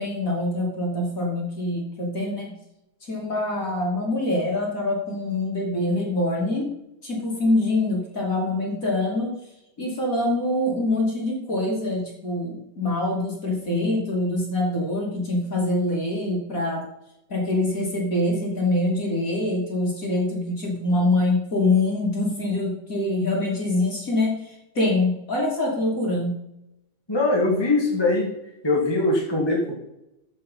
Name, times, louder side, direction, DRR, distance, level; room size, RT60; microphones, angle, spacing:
voice 1, 0.0-2.6 3.0-6.7 7.0-9.3 9.8-16.9 17.3-26.4, left 2 dB, 25° left, -2 dB, 2.6 m, -24 dB
voice 2, 27.1-28.3 28.6-29.7, left 2 dB, 10° left, -2 dB, 1.6 m, -21 dB
14.0 x 5.8 x 5.6 m, 0.86 s
omnidirectional pair, 3.7 m